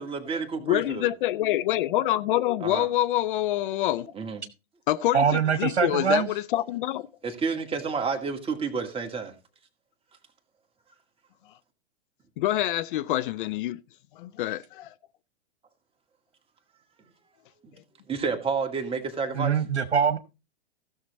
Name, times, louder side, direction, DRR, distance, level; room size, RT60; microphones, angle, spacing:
voice 1, 0.0-1.1 2.6-2.9 4.1-4.4 7.2-9.3 17.6-17.7 18.1-19.6, right 5 dB, 15° right, 2.2 m, -30 dB
voice 2, 0.6-4.1 4.9-5.2 5.6-7.1 12.4-13.8 14.2-14.9, left 14 dB, 50° left, 0.6 m, -26 dB
voice 3, 5.1-6.3 19.3-20.2, right 7 dB, 80° right, 1.2 m, -23 dB
15.5 x 6.6 x 4.1 m
hypercardioid pair, 110°, 32 cm